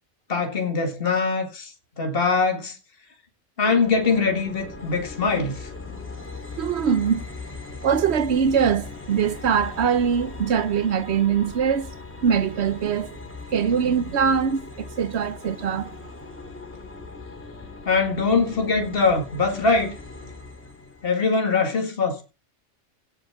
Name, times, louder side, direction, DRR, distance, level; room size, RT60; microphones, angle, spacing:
voice 1, 0.3-2.8 3.6-5.7 17.9-20.0 21.0-22.2, left 4 dB, 50° left, 2.4 m, -22 dB
sound 1, 3.6-21.0, left 3 dB, 10° left, 3.4 m, -39 dB
voice 2, 6.6-7.2 7.8-11.9 12.2-13.2 13.5-15.9, right 7 dB, 65° right, 1.1 m, -22 dB
17.0 x 7.2 x 3.6 m
omnidirectional pair, 1.3 m